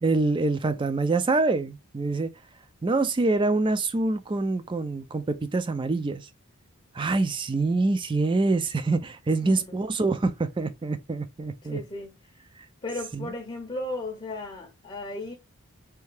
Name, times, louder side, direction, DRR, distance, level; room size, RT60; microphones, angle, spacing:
voice 1, 0.0-2.3 2.8-6.3 6.9-11.8 13.1-13.3, right 3 dB, 20° right, 0.3 m, -25 dB
voice 2, 9.4-9.8 11.7-12.2 12.8-15.3, left 2 dB, 25° left, 0.6 m, -35 dB
3.4 x 2.7 x 3.2 m
head